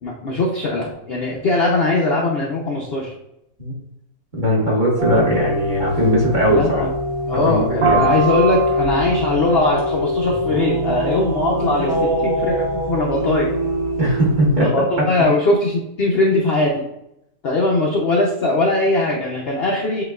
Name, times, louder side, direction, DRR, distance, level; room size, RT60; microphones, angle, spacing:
voice 1, 0.0-3.1 6.5-6.9 7.3-12.6 12.9-13.5 14.6-16.7 17.4-20.0, left 2 dB, 75° left, -2 dB, 0.5 m, -20 dB
voice 2, 4.4-6.8 7.4-8.1 14.0-14.7, equal, 30° right, -5 dB, 1.4 m, -18 dB
sound 1, 5.0-14.6, right 1 dB, 75° right, 1.6 m, -22 dB
7.8 x 3.0 x 2.3 m, 0.81 s
omnidirectional pair, 1.9 m